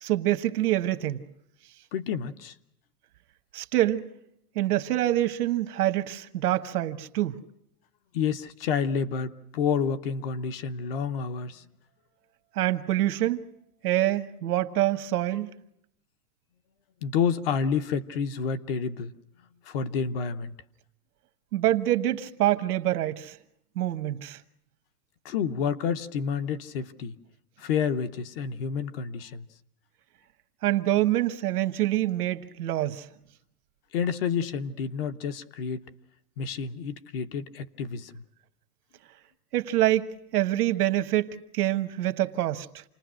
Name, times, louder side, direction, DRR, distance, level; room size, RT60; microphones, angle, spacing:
voice 1, 0.0-1.2 3.5-4.1 4.5-7.4 12.6-13.5 13.8-15.5 21.5-23.4 23.7-24.4 30.6-33.1 39.5-42.8, right 14 dB, 75° right, 1.4 m, -26 dB
voice 2, 1.9-2.5 8.1-11.7 17.0-19.1 19.6-20.5 25.2-27.2 27.6-29.5 33.9-35.9 36.4-38.2, left 6 dB, 40° left, 0.8 m, -29 dB
28.5 x 20.0 x 6.2 m
supercardioid pair, 175°, 46 cm